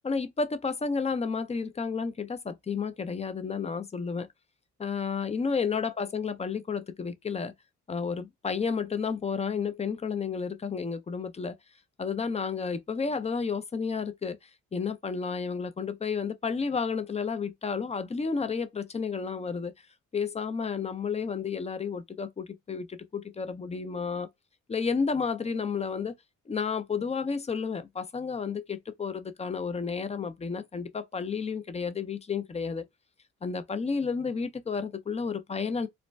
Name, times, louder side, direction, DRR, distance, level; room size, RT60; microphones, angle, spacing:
voice 1, 0.0-4.3 4.8-7.5 7.9-11.6 12.0-19.7 20.1-24.3 24.7-26.1 26.5-32.9 33.4-35.9, left 5 dB, 20° left, 0.5 m, -31 dB
2.5 x 2.1 x 3.2 m
cardioid pair, 90°, 30 cm